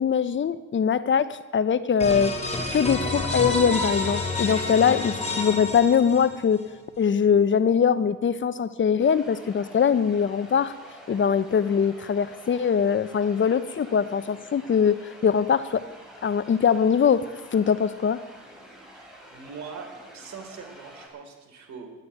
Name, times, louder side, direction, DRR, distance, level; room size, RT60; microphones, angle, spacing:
voice 1, 0.0-2.4 2.7-6.6 7.0-10.7 11.1-15.8 16.2-18.2, left 7 dB, 40° left, 14 dB, 0.8 m, -22 dB
sound 1, 2.0-6.6, left 2 dB, 20° left, 2.8 m, -29 dB
sound 2, 9.0-21.1, right 1 dB, ahead, 5.6 m, -48 dB
voice 2, 18.9-21.9, right 5 dB, 65° right, 4 dB, 3.3 m, -42 dB
11.5 x 9.8 x 9.5 m, 1.3 s
cardioid pair, 90°, 30 cm